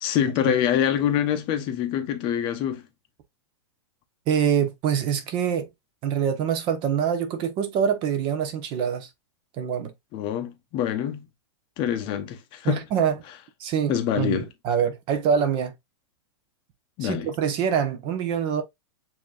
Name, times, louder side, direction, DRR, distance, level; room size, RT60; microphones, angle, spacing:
voice 1, 0.0-2.8 10.1-11.2 11.8-12.8 13.9-14.4 17.0-17.3, left 10 dB, 35° left, 0.8 m, -25 dB
voice 2, 4.3-5.7 6.0-9.1 9.6-9.9 12.6-13.2 13.6-15.7 17.0-18.6, right 8 dB, 35° right, 1.0 m, -25 dB
7.4 x 3.0 x 2.4 m
supercardioid pair, 150°, 15 cm